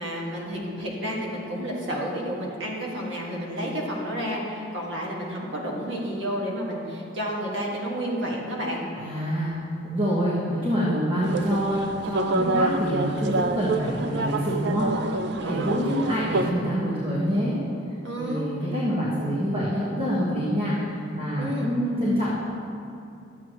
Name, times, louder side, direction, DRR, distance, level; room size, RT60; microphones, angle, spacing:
voice 1, 0.0-8.9 10.0-10.3 12.4-12.6 15.4-15.9 18.0-18.5 21.4-21.7, equal, 80° right, -3 dB, 1.9 m, -31 dB
voice 2, 9.0-9.6 9.8-17.6 18.2-22.3, equal, 30° right, -8 dB, 1.5 m, -26 dB
sound 1, 11.2-16.5, right 2 dB, 60° right, 0.4 m, -28 dB
12.5 x 8.3 x 3.1 m, 2.7 s
head